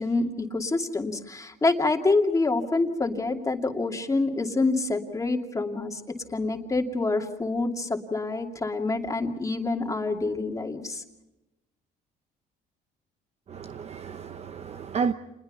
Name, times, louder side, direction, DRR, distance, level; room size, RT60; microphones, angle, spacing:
voice 1, 0.0-6.0 6.3-11.0, left 3 dB, 20° left, 2.6 m, -27 dB
voice 2, 13.5-15.1, right 6 dB, 40° right, 0.9 m, -31 dB
28.5 x 21.0 x 5.7 m
cardioid pair, 110°, 17 cm